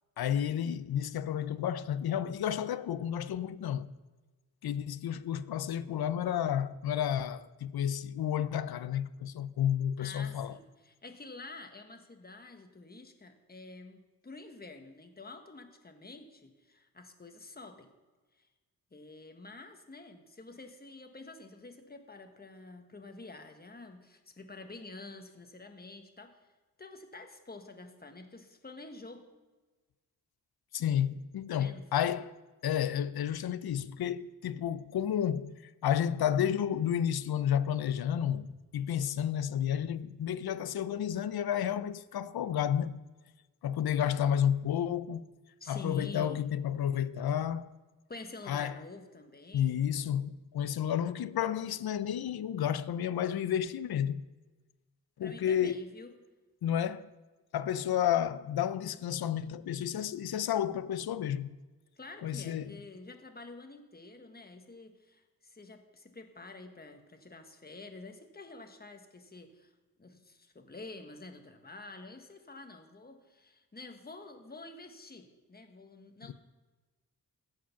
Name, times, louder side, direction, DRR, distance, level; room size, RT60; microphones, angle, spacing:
voice 1, 0.2-3.9 4.6-10.6 30.7-32.3 32.6-38.5 38.7-43.0 43.6-45.3 45.7-47.7 48.5-48.7 49.5-54.2 55.2-55.9 56.6-57.1 57.5-61.5 62.2-62.8 76.2-76.3, left 9 dB, 75° left, 0.6 m, -31 dB
voice 2, 10.0-17.9 18.4-18.5 18.9-26.4 26.8-29.3 31.5-31.8 45.6-46.4 48.1-49.8 55.2-56.1 62.0-69.7 70.0-76.3, left 2 dB, 25° left, 1.3 m, -48 dB
15.0 x 5.0 x 5.8 m
cardioid pair, 70°, 38 cm